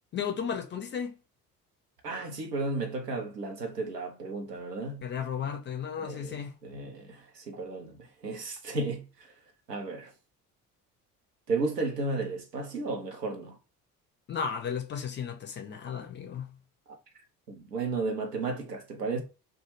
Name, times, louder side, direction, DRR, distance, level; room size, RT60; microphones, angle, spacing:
voice 1, 0.1-1.2 5.0-6.5 14.3-16.5, left 7 dB, 25° left, 0.4 m, -34 dB
voice 2, 2.0-5.1 6.0-8.0 8.2-9.0 9.7-10.1 11.5-13.6 17.5-19.2, right 3 dB, 90° right, 0.6 m, -33 dB
2.2 x 2.1 x 3.0 m
figure-of-eight pair, 55°, 47 cm